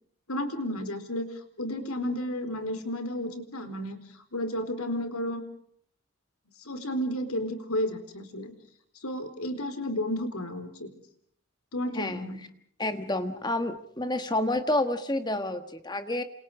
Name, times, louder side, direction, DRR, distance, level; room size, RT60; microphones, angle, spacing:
voice 1, 0.3-4.0 4.3-5.4 6.6-8.5 9.0-10.9 11.7-12.4, left 1 dB, 80° left, 10 dB, 4.2 m, -32 dB
voice 2, 11.9-12.3 12.8-16.2, left 1 dB, 20° left, 9 dB, 1.4 m, -29 dB
29.0 x 27.5 x 5.0 m, 0.64 s
head